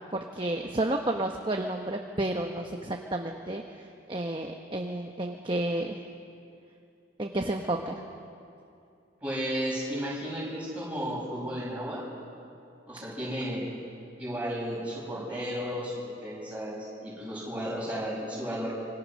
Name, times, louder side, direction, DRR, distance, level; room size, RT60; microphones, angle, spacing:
voice 1, 0.1-6.0 7.2-8.0, right 1 dB, 25° right, 2 dB, 1.0 m, -31 dB
voice 2, 9.2-12.0 12.9-13.7 14.2-18.7, equal, 5° right, -6 dB, 7.7 m, -33 dB
26.5 x 24.5 x 6.4 m, 2.6 s
head